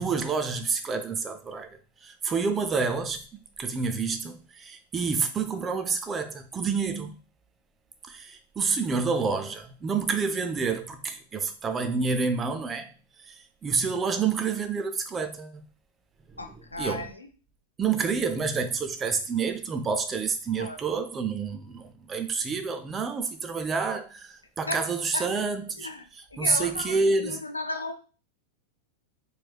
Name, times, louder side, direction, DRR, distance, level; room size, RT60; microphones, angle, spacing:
voice 1, 0.0-7.2 8.0-12.9 13.3-15.6 16.8-17.1 17.8-25.9 26.4-27.4, right 5 dB, 20° right, 0.5 m, -28 dB
voice 2, 16.4-17.3 20.6-20.8 24.7-24.8 25.1-25.3 25.8-26.0 26.3-28.0, left 2 dB, 80° left, 0.5 m, -34 dB
4.4 x 3.2 x 2.3 m
figure-of-eight pair, 90°, 0 cm